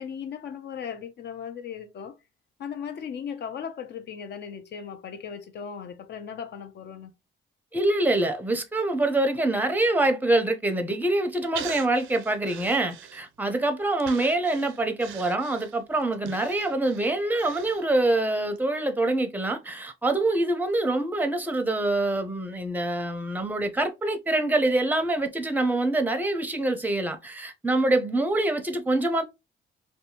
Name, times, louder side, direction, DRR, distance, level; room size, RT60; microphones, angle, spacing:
voice 1, 0.0-2.2 2.6-7.1, left 7 dB, 60° left, 0.6 m, -37 dB
voice 2, 7.7-29.2, right 2 dB, 10° right, 0.6 m, -25 dB
Breathing, 11.5-13.5 14.0-18.2 18.6-18.7, right 9 dB, 80° right, 0.4 m, -42 dB
2.7 x 2.2 x 2.7 m
cardioid pair, 90°, 20 cm